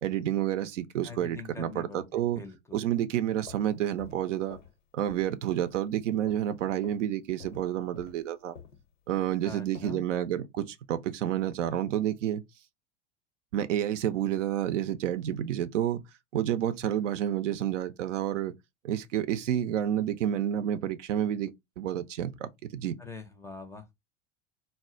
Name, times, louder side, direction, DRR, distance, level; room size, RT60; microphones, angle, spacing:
voice 1, 0.0-2.4 2.7-4.6 4.9-8.6 9.1-12.4 13.5-16.0 16.3-18.5 18.8-23.0, right 11 dB, 80° right, 0.5 m, -29 dB
voice 2, 1.0-2.9 9.4-10.0 23.0-23.9, left 4 dB, 10° left, 0.4 m, -44 dB
sound 1, 3.3-4.8 5.1-5.4 5.6-6.5 6.8-7.1 7.4-10.1, left 7 dB, 90° left, 0.9 m, -50 dB
2.2 x 2.1 x 3.6 m
hypercardioid pair, 85°, 36 cm